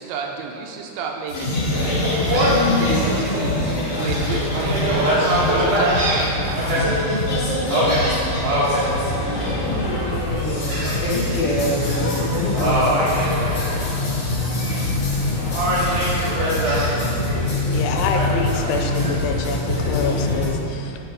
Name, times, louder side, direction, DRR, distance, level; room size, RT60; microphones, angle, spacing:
voice 1, 0.0-7.2, right 5 dB, 80° right, 1 dB, 2.8 m, -32 dB
sound 1, 1.3-20.5, left 2 dB, 40° left, 2.2 m, -23 dB
Gull seagull, 2.3-2.7 3.2-3.3 3.8-6.8 7.7-8.8 9.4-9.8 10.7-11.4 11.7-12.0 12.5-14.1 14.4-15.1 15.5-16.9 18.1-19.1, right 1 dB, 50° right, 3.0 m, -23 dB
voice 2, 9.2-13.0, left 1 dB, 70° left, -9 dB, 1.9 m, -27 dB
voice 3, 17.7-21.0, left 5 dB, 85° left, 5 dB, 2.9 m, -27 dB
10.0 x 5.0 x 5.9 m, 2.7 s
omnidirectional pair, 5.4 m